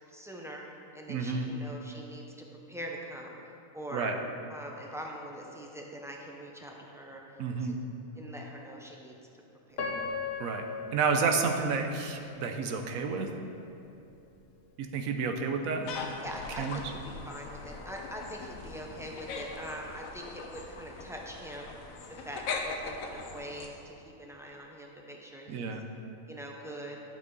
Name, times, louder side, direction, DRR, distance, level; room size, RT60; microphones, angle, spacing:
voice 1, 0.1-0.6 0.9-4.2 4.5-7.8 8.1-9.2 9.7-10.1 16.2-25.8 26.3-27.0, equal, 5° right, -1 dB, 0.6 m, -43 dB
voice 2, 1.1-1.5 3.9-4.1 7.4-7.8 10.4-10.6 10.9-13.3 14.8-15.9 16.6-16.8 25.5-25.8, right 5 dB, 90° right, 5 dB, 1.1 m, -30 dB
Piano, 9.8-12.8 13.3-13.4 14.1-14.3, left 4 dB, 50° left, 1.1 m, -38 dB
sound 1, 15.8-23.7, left 4 dB, 85° left, 1.2 m, -41 dB
11.5 x 6.0 x 4.0 m, 2.8 s
omnidirectional pair, 1.4 m